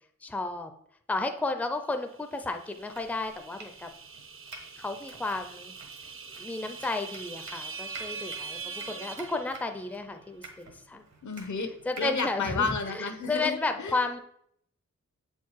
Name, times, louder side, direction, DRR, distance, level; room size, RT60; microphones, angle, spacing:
voice 1, 0.2-0.7 1.1-3.9 4.8-5.7 6.4-11.0 11.9-14.2, left 3 dB, 5° left, 6 dB, 0.5 m, -33 dB
sound 1, 2.1-10.1, right 5 dB, 45° right, 0.6 m, -43 dB
Domestic sounds home sounds, 2.8-13.4, right 3 dB, 70° right, 1.4 m, -51 dB
voice 2, 11.2-11.7 12.0-14.2, left 4 dB, 75° left, 8 dB, 0.9 m, -31 dB
7.7 x 4.7 x 4.5 m, 0.71 s
wide cardioid pair, 150°, 29 cm